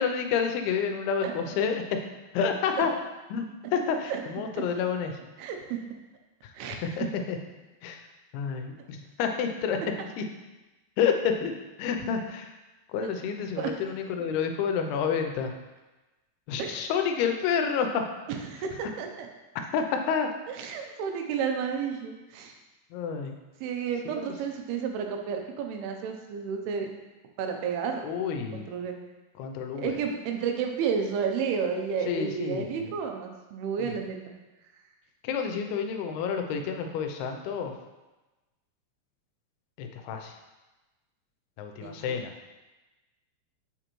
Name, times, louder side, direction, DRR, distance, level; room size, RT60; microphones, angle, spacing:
voice 1, 0.0-1.8 2.3-2.9 3.3-5.2 6.4-6.5 6.8-7.4 7.8-8.0 8.3-10.2 11.0-11.5 11.8-12.5 12.9-15.5 16.5-18.0 19.7-20.3 22.9-23.3 24.2-24.3 28.0-28.7 29.4-30.0 32.1-32.9 33.8-34.0 35.2-37.7 39.8-40.4 41.6-42.3, left 6 dB, 90° left, 5 dB, 2.6 m, -29 dB
voice 2, 5.4-5.8 6.5-7.1 13.0-13.1 13.6-13.8 16.6-16.8 18.5-19.3 20.5-22.6 23.6-26.9 27.4-28.0 28.7-28.9 29.8-34.2 41.8-42.2, right 6 dB, 85° right, 3 dB, 2.6 m, -31 dB
6.7 x 5.0 x 3.0 m, 1.1 s
omnidirectional pair, 4.4 m